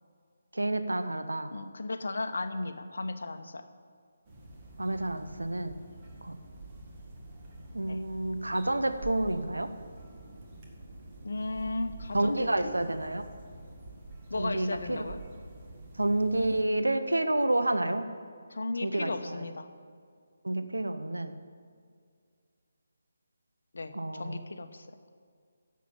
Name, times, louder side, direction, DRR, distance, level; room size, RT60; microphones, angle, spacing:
voice 1, 0.6-1.5 4.8-5.7 6.3-6.4 7.7-9.7 12.1-13.2 14.4-15.0 16.0-18.1 18.8-19.1 20.4-21.3 23.9-24.4, right 1 dB, 75° right, 9 dB, 0.8 m, -29 dB
voice 2, 1.5-3.6 7.9-8.0 11.2-12.7 14.3-15.2 18.5-19.7 23.7-24.9, left 2 dB, 60° left, 9 dB, 0.9 m, -35 dB
sound 1, 4.2-16.6, right 2 dB, 25° right, 1.8 m, -47 dB
11.0 x 7.5 x 8.5 m, 2.1 s
figure-of-eight pair, 145°, 0 cm